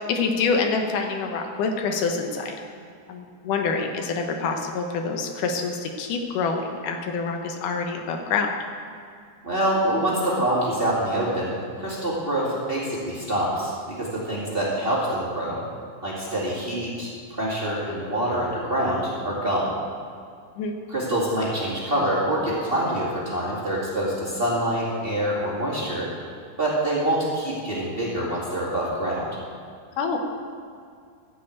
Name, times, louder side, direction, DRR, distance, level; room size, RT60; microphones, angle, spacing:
voice 1, 0.1-2.6 3.1-8.5 20.6-20.7 30.0-30.2, left 4 dB, 85° left, 3 dB, 2.6 m, -26 dB
voice 2, 9.4-15.6 16.0-19.7 20.9-26.1 26.6-29.3, right 1 dB, 20° right, -7 dB, 2.1 m, -25 dB
14.5 x 5.7 x 8.3 m, 2.2 s
omnidirectional pair, 3.6 m